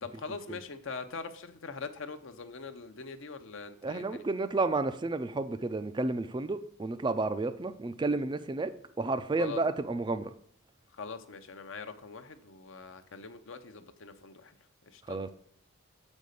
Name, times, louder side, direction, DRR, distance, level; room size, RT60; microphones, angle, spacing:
voice 1, 0.0-4.2 9.4-9.6 11.0-14.5 14.9-15.2, left 4 dB, 60° left, 9 dB, 0.7 m, -42 dB
voice 2, 3.8-8.7 9.0-10.3 15.1-15.3, right 3 dB, 20° right, 10 dB, 0.3 m, -31 dB
6.7 x 5.3 x 6.5 m, 0.66 s
head